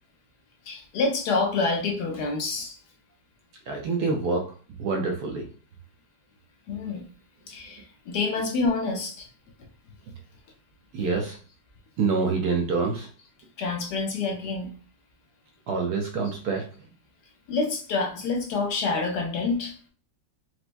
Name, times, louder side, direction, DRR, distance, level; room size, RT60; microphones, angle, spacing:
voice 1, 0.6-2.8 6.7-7.1 7.5-9.3 13.6-14.7 16.2-16.6 17.5-19.7, left 3 dB, 70° left, 2 dB, 1.0 m, -27 dB
voice 2, 3.7-4.5 4.8-5.4 10.9-11.4 12.0-13.1 15.7-16.6, right 4 dB, 70° right, 2 dB, 1.0 m, -26 dB
4.5 x 2.1 x 2.5 m, 0.39 s
omnidirectional pair, 2.0 m